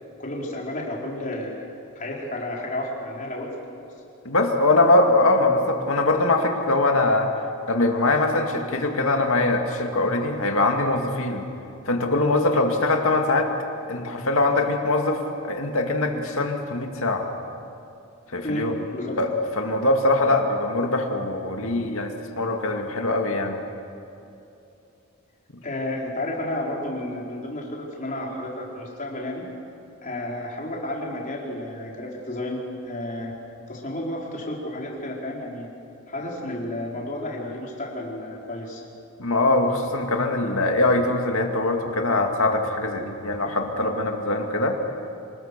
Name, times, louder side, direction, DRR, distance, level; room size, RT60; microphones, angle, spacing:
voice 1, 0.2-1.6 2.0-3.8 18.4-19.2 25.6-29.4 30.0-33.4 33.7-35.7 36.1-38.8, left 1 dB, 35° left, -2 dB, 4.3 m, -32 dB
voice 2, 4.2-7.3 7.7-11.5 11.9-13.5 13.9-17.3 18.3-18.7 19.2-23.6 39.2-44.8, left 2 dB, 65° left, 3 dB, 2.4 m, -22 dB
26.5 x 20.0 x 6.8 m, 2.7 s
head